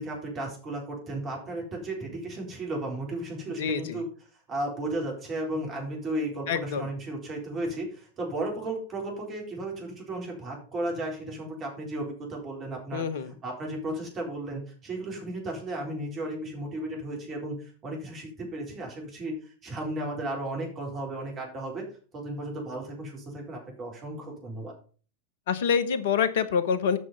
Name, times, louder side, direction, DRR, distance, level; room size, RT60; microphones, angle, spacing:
voice 1, 0.0-4.1 4.5-13.0 13.4-21.8 22.1-24.8, right 1 dB, 25° right, 0 dB, 4.0 m, -34 dB
voice 2, 3.6-4.0 6.5-6.9 12.9-13.3 25.5-27.0, left 6 dB, 55° left, 13 dB, 1.0 m, -26 dB
8.4 x 6.1 x 5.5 m, 0.39 s
figure-of-eight pair, 90°, 0 cm